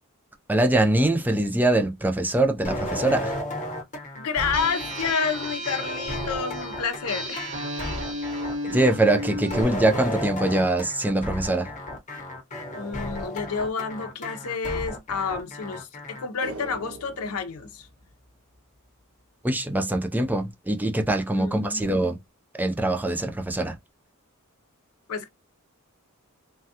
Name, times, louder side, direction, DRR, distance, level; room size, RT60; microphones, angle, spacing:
voice 1, 0.5-3.4 8.7-11.7 19.4-22.2 22.5-23.8, right 2 dB, 10° right, 0.4 m, -23 dB
sound 1, 2.6-16.3, left 1 dB, 35° left, 1.0 m, -34 dB
voice 2, 4.1-8.0 12.7-17.9 21.3-21.9 25.1-25.3, left 5 dB, 75° left, 0.6 m, -30 dB
sound 2, 4.5-9.6, equal, 60° right, 1.7 m, -33 dB
sound 3, 16.4-18.9 19.2-19.3, right 3 dB, 85° right, 1.3 m, -43 dB
3.3 x 2.3 x 2.8 m
head